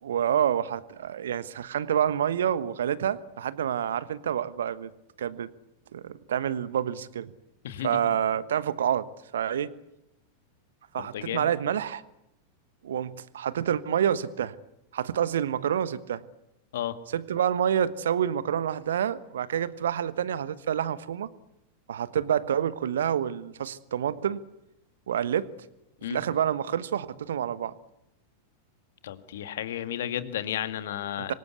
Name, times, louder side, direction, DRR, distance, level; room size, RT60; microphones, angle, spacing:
voice 1, 0.0-4.9 5.2-5.5 5.9-7.3 7.8-9.1 9.3-9.7 10.9-12.0 12.8-14.5 14.9-16.2 17.1-21.3 21.9-24.4 25.1-25.5 26.1-27.7 31.2-31.3, right 9 dB, 65° right, 16 dB, 1.3 m, -28 dB
voice 2, 7.6-8.0 11.0-11.5 16.7-17.0 26.0-26.2 29.0-31.3, left 11 dB, 60° left, 10 dB, 2.0 m, -33 dB
26.5 x 24.0 x 8.4 m, 0.88 s
figure-of-eight pair, 90°, 0 cm